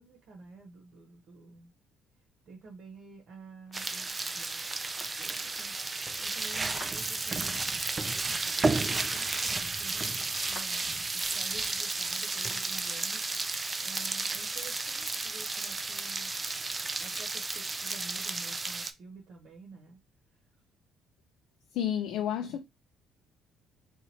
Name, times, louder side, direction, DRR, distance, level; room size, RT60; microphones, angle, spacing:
voice 1, 0.0-1.7 2.4-5.7 6.2-13.5 13.8-16.3 17.0-20.0 20.3-20.4 22.1-22.2, right 4 dB, 50° right, 1.0 m, -51 dB
sound 1, 3.7-12.7, left 3 dB, 25° left, 0.7 m, -55 dB
sound 2, 3.7-18.9, right 3 dB, 15° right, 0.3 m, -33 dB
voice 2, 21.7-22.6, left 10 dB, 75° left, 0.4 m, -31 dB
2.8 x 2.5 x 4.2 m
cardioid pair, 170°, 0 cm